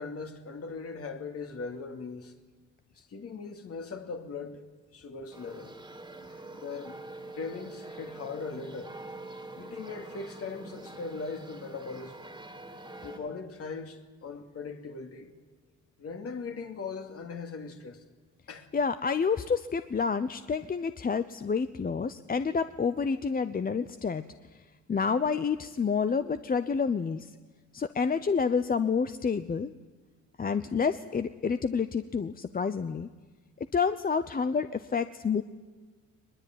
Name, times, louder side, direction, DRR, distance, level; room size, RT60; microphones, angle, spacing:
voice 1, 0.0-2.3 2.9-5.8 6.5-7.0 7.4-9.0 9.5-12.1 13.0-15.3 16.0-18.0 18.5-18.7, left 4 dB, 50° left, 2.6 m, -39 dB
sound 1, 5.3-13.2, right 2 dB, 15° right, 2.4 m, -45 dB
voice 2, 18.7-24.2 24.5-24.6 24.9-27.3 27.7-29.7 30.4-33.1 33.6-35.4, left 5 dB, 30° left, 0.8 m, -29 dB
21.5 x 21.0 x 9.3 m
cardioid pair, 90°, 30 cm